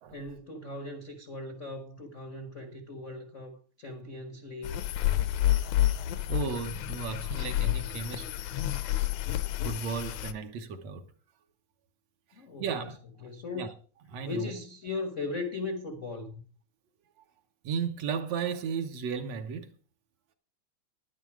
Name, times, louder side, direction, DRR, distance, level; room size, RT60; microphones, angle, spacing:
voice 1, 0.1-4.8 12.4-12.8 13.2-13.6 14.2-16.4, left 3 dB, 50° left, 0.8 m, -38 dB
sound 1, 4.6-10.3, left 13 dB, 75° left, 2.1 m, -29 dB
voice 2, 6.3-8.3 8.6-8.7 9.6-11.0 12.6-13.3 13.5-13.7 14.1-14.5 17.6-19.7, right 6 dB, 70° right, 2.1 m, -34 dB
11.0 x 10.5 x 4.7 m
omnidirectional pair, 3.3 m